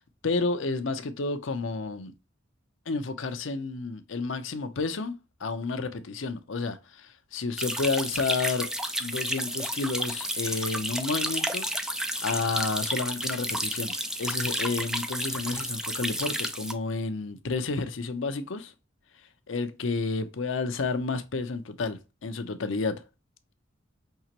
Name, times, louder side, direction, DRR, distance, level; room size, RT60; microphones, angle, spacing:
voice 1, 0.2-2.1 2.9-5.1 5.4-8.7 9.0-11.7 12.2-13.9 14.2-18.7 19.5-23.0, left 3 dB, 70° left, 0.6 m, -30 dB
sound 1, 7.6-16.7, equal, 5° right, 0.3 m, -31 dB
5.6 x 2.9 x 2.9 m
head